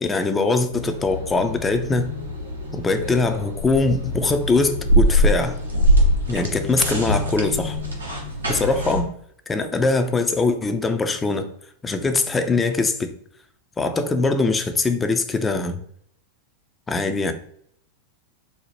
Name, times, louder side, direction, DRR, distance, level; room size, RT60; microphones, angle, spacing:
voice 1, 0.0-2.1 2.7-5.6 6.3-7.8 8.5-9.1 9.5-11.5 11.8-13.1 13.8-15.8 16.9-17.3, left 3 dB, 15° left, 0.3 m, -22 dB
sound 1, 0.7-9.0, equal, 85° right, 0.7 m, -23 dB
2.7 x 2.0 x 3.0 m
figure-of-eight pair, 95°, 0 cm